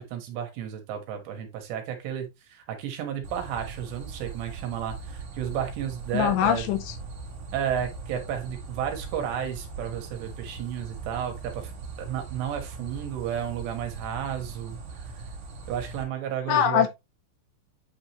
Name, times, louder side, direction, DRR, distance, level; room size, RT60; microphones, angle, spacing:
voice 1, 0.0-6.7 7.5-11.7 12.0-15.1 15.7-16.9, right 9 dB, 70° right, 3.4 m, -32 dB
sound 1, 3.2-16.0, right 4 dB, 50° right, 3.2 m, -40 dB
voice 2, 6.1-7.0 16.5-16.9, left 10 dB, 85° left, 2.7 m, -22 dB
9.2 x 3.7 x 3.0 m
omnidirectional pair, 5.3 m